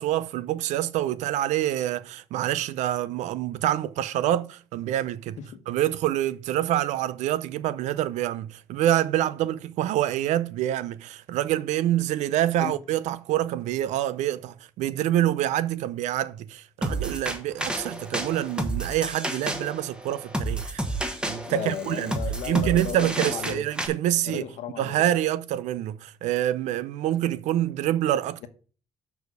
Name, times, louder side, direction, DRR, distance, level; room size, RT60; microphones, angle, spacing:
voice 1, 0.0-5.4 5.7-20.8 21.2-22.2 22.4-24.4 24.8-28.5, right 13 dB, 85° right, 0.6 m, -26 dB
voice 2, 5.4-5.8 12.6-12.8 21.4-23.7 24.2-25.1, left 9 dB, 80° left, 1.2 m, -35 dB
sound 1, 16.8-23.9, right 1 dB, 10° right, 1.3 m, -31 dB
6.4 x 5.0 x 6.6 m
cardioid pair, 125°, 12 cm